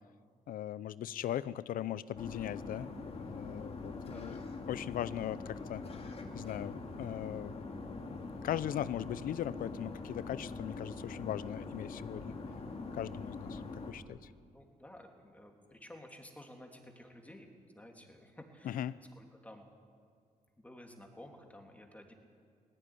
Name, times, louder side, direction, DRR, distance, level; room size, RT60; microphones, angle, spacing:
voice 1, 0.5-2.9 3.2-4.4 4.7-5.8 6.3-7.6 8.4-12.3 12.9-13.6 13.9-14.3 18.6-19.0, left 11 dB, 80° left, 18 dB, 0.6 m, -39 dB
sound 1, 2.1-13.9, left 3 dB, 45° left, 2.5 m, -43 dB
voice 2, 4.1-4.5 14.5-17.5 17.7-19.7 20.6-22.1, left 1 dB, 10° left, 2 dB, 3.2 m, -53 dB
17.5 x 15.5 x 10.0 m, 2.1 s
cardioid pair, 85°, 14 cm